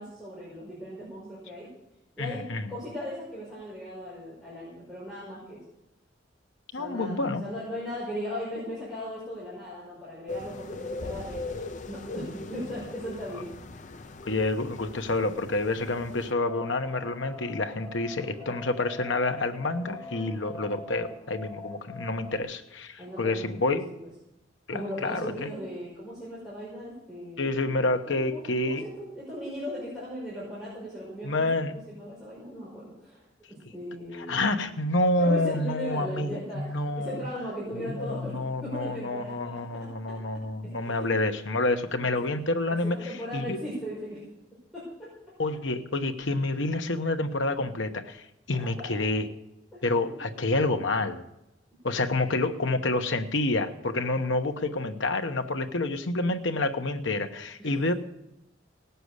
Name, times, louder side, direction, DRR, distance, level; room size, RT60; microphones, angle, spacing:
voice 1, 0.0-1.7 2.2-2.4 2.7-5.6 6.7-11.5 11.9-13.5 23.0-23.6 24.7-27.6 28.0-33.2 33.5-34.5 35.2-40.2 40.6-41.1 42.8-44.2 44.7-45.1 48.5-49.1 49.7-50.2 57.6-57.8, equal, ahead, -10 dB, 5.5 m, -38 dB
voice 2, 2.2-2.6 6.7-7.4 14.2-23.9 24.7-25.3 27.4-28.8 31.2-31.8 34.1-37.3 37.9-43.0 43.3-43.6 45.4-49.2 49.8-51.2 51.8-57.9, left 2 dB, 75° left, 7 dB, 1.1 m, -28 dB
sound 1, 10.3-16.3, left 3 dB, 40° left, 0.6 m, -40 dB
sound 2, 16.3-22.4, left 2 dB, 20° left, 3.5 m, -44 dB
18.0 x 6.9 x 8.1 m, 0.89 s
head